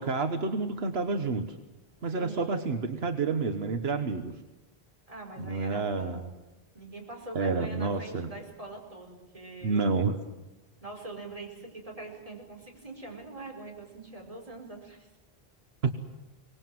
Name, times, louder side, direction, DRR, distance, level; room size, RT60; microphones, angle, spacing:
voice 1, 0.0-1.5 2.0-4.3 5.4-6.2 7.3-8.3 9.6-10.1 15.8-15.9, right 4 dB, 85° right, 7 dB, 1.4 m, -29 dB
voice 2, 2.1-2.7 5.1-6.3 6.7-9.9 10.8-15.1, right 2 dB, 35° right, 0 dB, 4.9 m, -43 dB
24.0 x 19.5 x 7.7 m, 1.0 s
omnidirectional pair, 1.0 m